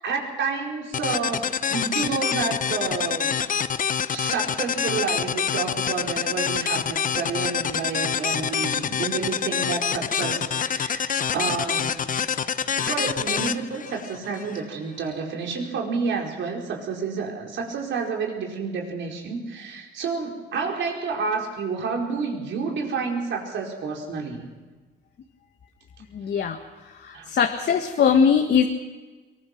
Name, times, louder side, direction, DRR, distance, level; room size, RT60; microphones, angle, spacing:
voice 1, 0.0-3.4 4.1-11.9 12.7-24.4 27.1-27.3, right 5 dB, 70° right, 0 dB, 4.8 m, -29 dB
sound 1, 0.9-14.6, left 7 dB, 40° left, 0.8 m, -26 dB
voice 2, 26.1-26.6 27.0-28.6, left 7 dB, 60° left, 4 dB, 1.6 m, -20 dB
22.5 x 20.5 x 6.1 m, 1.3 s
cardioid pair, 90°, 20 cm